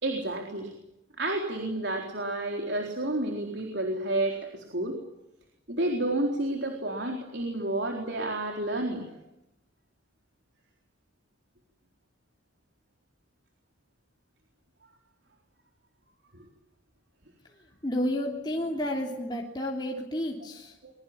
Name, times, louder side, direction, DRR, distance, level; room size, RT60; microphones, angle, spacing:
voice 1, 0.0-0.7 1.2-5.0 5.7-9.0 20.8-20.9, right 1 dB, 60° right, 2 dB, 3.8 m, -30 dB
voice 2, 17.8-20.8, left 1 dB, 20° left, -1 dB, 3.2 m, -31 dB
23.5 x 22.5 x 8.7 m, 0.86 s
head